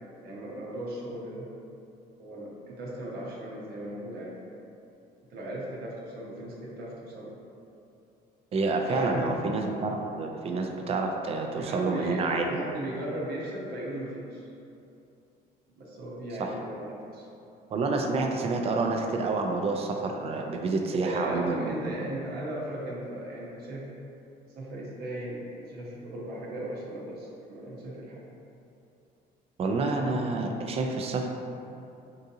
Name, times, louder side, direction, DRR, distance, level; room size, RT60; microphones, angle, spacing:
voice 1, 0.2-1.5 2.2-4.3 5.3-7.4 8.9-9.3 11.5-14.5 15.8-17.3 20.9-23.9 24.6-28.2, right 1 dB, 65° right, -5 dB, 0.7 m, -37 dB
voice 2, 8.5-12.6 16.4-16.5 17.7-21.8 29.6-31.3, right 3 dB, 35° right, 2 dB, 0.3 m, -28 dB
3.6 x 2.7 x 2.6 m, 2.7 s
cardioid pair, 110°, 17 cm